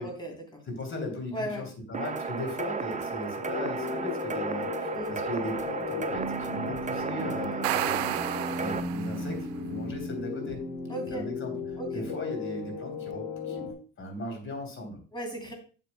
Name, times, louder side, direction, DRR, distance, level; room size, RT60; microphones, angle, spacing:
voice 1, 0.0-0.6 1.3-1.6 4.9-5.2 10.9-11.2 11.8-12.0 15.1-15.5, right 1 dB, 15° left, 2 dB, 3.3 m, -36 dB
voice 2, 0.7-8.2 8.6-10.6 11.1-11.5 11.9-13.7 14.0-15.0, left 1 dB, 35° left, 4 dB, 3.4 m, -37 dB
sound 1, 1.9-8.8, right 4 dB, 20° right, 0.7 m, -34 dB
sound 2, 3.4-13.7, left 3 dB, 60° left, 2.8 m, -36 dB
sound 3, 7.4-9.4, right 15 dB, 85° right, 0.6 m, -32 dB
10.5 x 6.7 x 2.2 m, 0.37 s
supercardioid pair, 80°, 34 cm